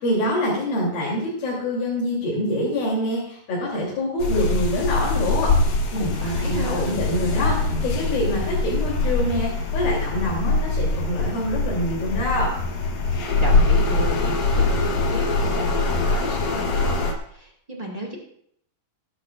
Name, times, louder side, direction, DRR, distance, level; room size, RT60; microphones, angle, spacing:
voice 1, 0.0-12.5, left 1 dB, 80° left, -6 dB, 4.9 m, -25 dB
sound 1, 4.2-17.1, left 3 dB, 60° left, 2.3 m, -23 dB
voice 2, 6.0-7.0 13.4-14.2 14.5-18.2, right 1 dB, 25° right, -2 dB, 0.8 m, -34 dB
19.5 x 10.5 x 2.5 m, 0.67 s
omnidirectional pair, 4.1 m